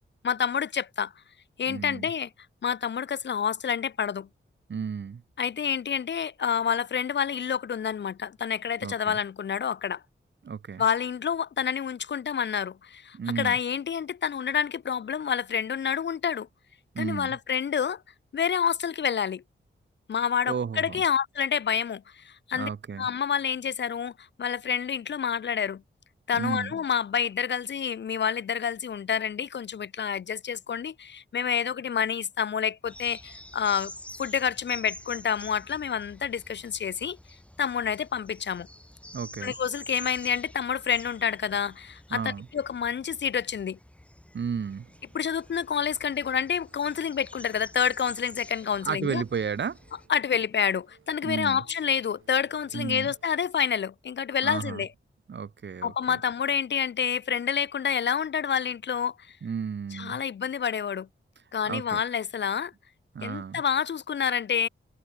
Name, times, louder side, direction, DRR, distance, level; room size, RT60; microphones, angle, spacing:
voice 1, 0.2-1.1 1.6-2.3 2.6-4.3 5.4-10.0 10.8-16.5 17.0-18.0 18.3-19.4 20.1-22.7 23.0-24.1 24.4-25.8 26.3-33.9 34.2-37.2 37.6-38.7 39.4-43.8 45.1-49.2 50.1-54.9 55.8-59.4 59.9-61.1 61.5-62.7 63.2-64.7, left 7 dB, 60° left, 0.7 m, -28 dB
voice 2, 1.7-2.1 4.7-5.2 8.8-9.2 10.4-10.8 13.1-13.6 16.9-17.4 20.5-21.0 22.5-23.1 26.4-26.7 39.1-39.6 42.1-42.5 44.3-44.9 48.8-49.8 51.2-51.6 52.7-53.1 54.4-54.8 55.3-56.2 59.4-60.2 61.6-62.0 63.1-63.6, right 6 dB, 65° right, 1.9 m, -33 dB
sound 1, 32.8-50.1, left 1 dB, 5° left, 2.2 m, -48 dB
sound 2, 44.6-53.5, right 7 dB, 90° right, 6.8 m, -61 dB
wide cardioid pair, 135°, 20 cm